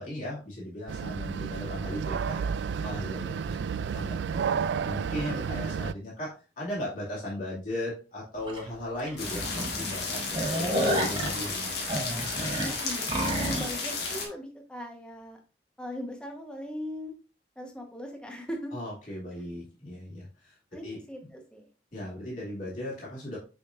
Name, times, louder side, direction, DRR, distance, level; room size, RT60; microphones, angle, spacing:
voice 1, 0.0-11.7 18.7-20.6 20.8-21.0 21.9-23.4, left 1 dB, 45° left, -6 dB, 2.5 m, -37 dB
sound 1, 0.9-5.9, right 6 dB, 80° right, 0.3 m, -31 dB
sound 2, 8.5-8.6 9.1-9.2 9.5-9.6 10.0-13.7, right 1 dB, 30° right, 1.7 m, -30 dB
sound 3, 9.2-14.3, left 3 dB, 65° left, 1.8 m, -33 dB
voice 2, 12.6-15.4 15.8-17.2 17.6-18.7 20.7-21.7, equal, 5° left, 2 dB, 1.2 m, -39 dB
6.5 x 5.9 x 2.6 m, 0.33 s
head